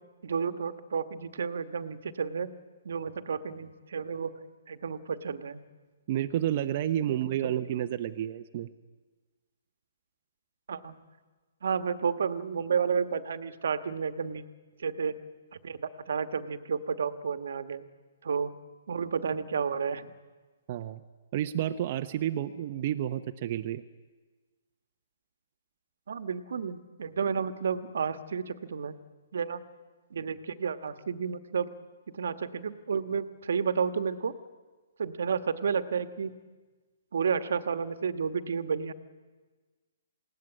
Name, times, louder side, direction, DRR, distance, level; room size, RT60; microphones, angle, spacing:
voice 1, 0.2-2.6 2.8-4.4 4.7-5.6 7.1-7.6 10.7-11.0 11.6-14.5 14.8-15.2 15.6-17.8 18.2-18.5 18.9-20.1 26.1-29.0 29.3-29.6 30.1-31.7 32.1-34.3 35.0-36.4 37.1-38.9, right 6 dB, 75° right, 11 dB, 1.3 m, -31 dB
voice 2, 6.1-8.7 20.7-21.0 21.3-23.8, right 11 dB, 40° right, 7 dB, 0.8 m, -30 dB
20.0 x 17.5 x 9.8 m, 1.3 s
hypercardioid pair, 160°, 0 cm